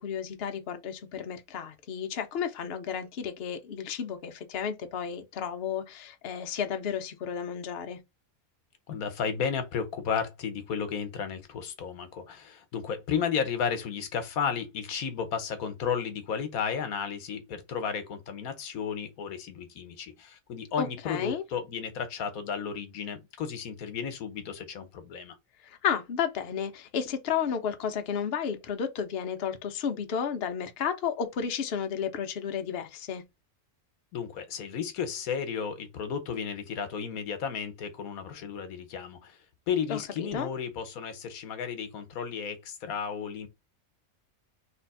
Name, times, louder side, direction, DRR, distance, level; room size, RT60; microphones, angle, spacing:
voice 1, 0.0-8.0 20.8-21.4 25.6-33.2 39.9-40.5, left 7 dB, 50° left, 0.9 m, -32 dB
voice 2, 8.9-25.4 34.1-39.4 39.7-43.5, left 7 dB, 80° left, 1.3 m, -33 dB
3.4 x 3.0 x 4.6 m
omnidirectional pair, 1.5 m